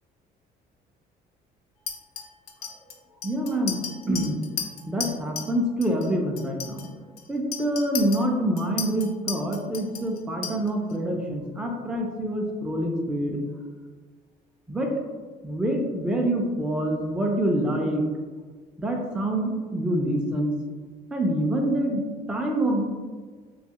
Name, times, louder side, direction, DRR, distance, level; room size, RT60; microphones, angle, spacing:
Chink clink, 1.9-5.5 5.8-6.1 6.4-10.9, left 7 dB, 75° left, 0.5 m, -35 dB
voice 1, 3.2-3.8 4.1-4.4 4.9-6.9 7.3-13.4 14.7-14.9 15.4-18.0 18.8-20.5 21.1-22.8, right 1 dB, 5° right, 0 dB, 0.3 m, -26 dB
2.6 x 2.3 x 2.8 m, 1.4 s
cardioid pair, 110°, 17 cm